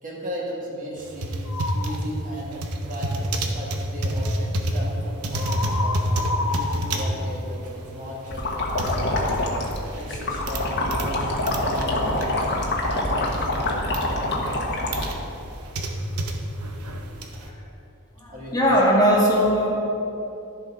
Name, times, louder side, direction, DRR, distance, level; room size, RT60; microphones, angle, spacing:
voice 1, 0.0-1.4 1.7-6.0 6.5-9.6 10.0-12.4 12.9-15.0 18.3-18.8, equal, 40° right, -4 dB, 2.1 m, -36 dB
sound 1, 1.0-11.1 11.4-13.1 13.4-14.0 14.5-17.5, right 1 dB, 85° right, 1.0 m, -29 dB
sound 2, 1.5-2.0 5.3-8.1, left 3 dB, 75° left, 0.6 m, -31 dB
sound 3, 8.3-15.1, left 1 dB, 55° left, 1.5 m, -25 dB
voice 2, 18.2-19.7, equal, 15° left, -4 dB, 1.7 m, -19 dB
12.5 x 7.2 x 5.0 m, 2.9 s
head